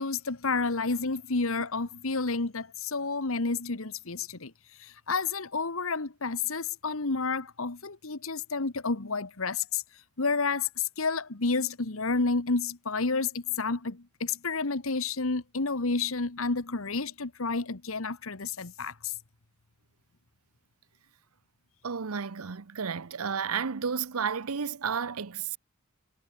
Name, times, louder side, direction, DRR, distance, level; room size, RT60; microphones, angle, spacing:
voice 1, 0.0-4.5 4.8-9.8 10.2-19.1, left 4 dB, 70° left, 1.4 m, -30 dB
voice 2, 21.8-25.6, right 6 dB, 90° right, 0.8 m, -32 dB
head